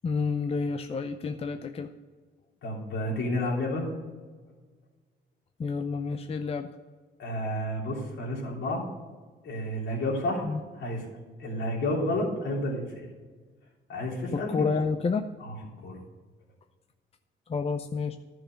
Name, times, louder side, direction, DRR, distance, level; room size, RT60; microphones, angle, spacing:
voice 1, 0.0-1.9 5.6-6.7 10.4-10.6 14.3-15.3 17.5-18.2, left 4 dB, 30° left, 8 dB, 0.6 m, -29 dB
voice 2, 2.6-3.8 7.2-8.9 9.4-10.5 10.8-11.0 11.4-13.1 13.9-14.6 15.4-15.5 15.8-16.0, left 1 dB, 70° left, -2 dB, 3.4 m, -30 dB
11.0 x 6.3 x 7.8 m, 1.4 s
cardioid pair, 90°, 20 cm